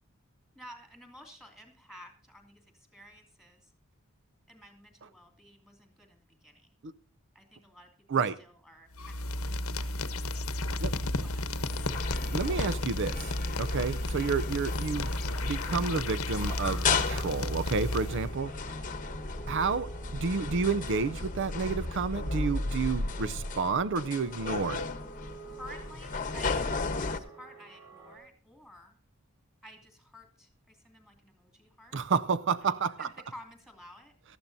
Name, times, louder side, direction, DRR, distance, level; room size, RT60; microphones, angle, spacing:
voice 1, 0.5-3.7 4.5-6.7 7.3-8.1 8.4-12.1 25.5-29.0 29.6-32.0 32.6-34.1, equal, ahead, 2.7 m, -53 dB
voice 2, 8.1-8.4 10.8-10.9 12.3-13.3 13.6-18.5 19.5-24.9 31.9-33.1, right 4 dB, 60° right, 0.5 m, -30 dB
sound 1, 8.9-18.3, left 1 dB, 85° left, 1.0 m, -33 dB
sound 2, 11.7-27.2, left 3 dB, 40° left, 1.0 m, -35 dB
sound 3, 16.6-28.2, right 5 dB, 20° right, 6.5 m, -50 dB
19.0 x 13.5 x 2.7 m
head